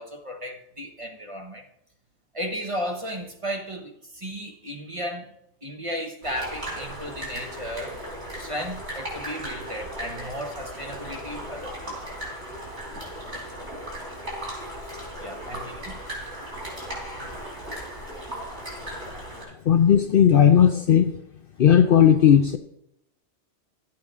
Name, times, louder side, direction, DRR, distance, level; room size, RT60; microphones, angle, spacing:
voice 1, 0.0-1.6 2.3-5.3 5.6-8.0 8.4-12.0 15.2-16.0 17.2-17.3, equal, 30° right, 3 dB, 0.9 m, -34 dB
sound 1, 6.2-19.4, equal, 70° right, 4.3 m, -36 dB
voice 2, 19.7-21.1 21.6-22.6, left 9 dB, 60° left, 7 dB, 0.7 m, -16 dB
12.0 x 8.8 x 3.6 m, 0.78 s
omnidirectional pair, 1.2 m